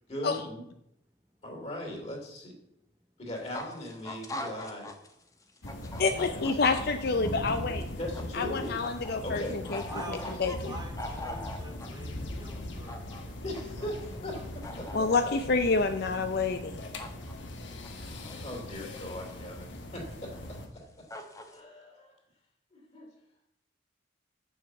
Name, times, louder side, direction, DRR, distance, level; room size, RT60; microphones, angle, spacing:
voice 1, 0.1-0.6 1.4-2.5 3.2-4.9 6.1-6.5 8.0-8.8 9.2-9.6 13.4-15.3 17.9-21.1 21.5-22.1 22.7-23.1, left 1 dB, 35° left, 1 dB, 2.9 m, -40 dB
sound 1, 3.4-5.1 5.4-9.1 9.4-11.9 12.6-13.2 13.5-14.3 14.6-15.2 17.0-17.3 17.6-18.5 19.1-19.2 20.1-20.2 20.8-20.9 21.1-21.6, left 1 dB, 15° left, 1.0 m, -42 dB
sound 2, 5.6-20.7, left 1 dB, 70° left, 1.3 m, -40 dB
voice 2, 6.0-7.8 8.3-9.8 10.1-10.7 14.9-16.8, left 4 dB, 55° left, 8 dB, 0.5 m, -28 dB
voice 3, 9.9-13.4 13.8-13.9, right 1 dB, 20° right, 3 dB, 1.3 m, -46 dB
7.0 x 6.3 x 7.7 m, 0.81 s
head